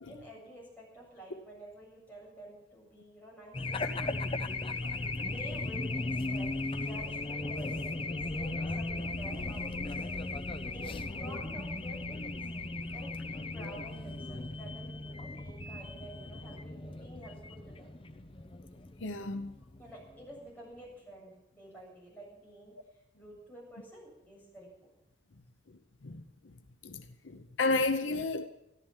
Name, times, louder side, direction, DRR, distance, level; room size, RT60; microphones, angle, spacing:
voice 1, 0.1-4.4 5.2-10.3 10.7-12.4 12.9-17.9 19.8-22.7 23.2-24.9, right 1 dB, 10° left, 7.5 m, -50 dB
Race car auto racing / Alarm, 3.5-20.5, left 2 dB, 30° left, 0.7 m, -37 dB
voice 2, 19.0-19.5 26.0-26.2 26.8-28.5, left 3 dB, 80° left, 0.9 m, -32 dB
14.0 x 13.0 x 7.4 m
head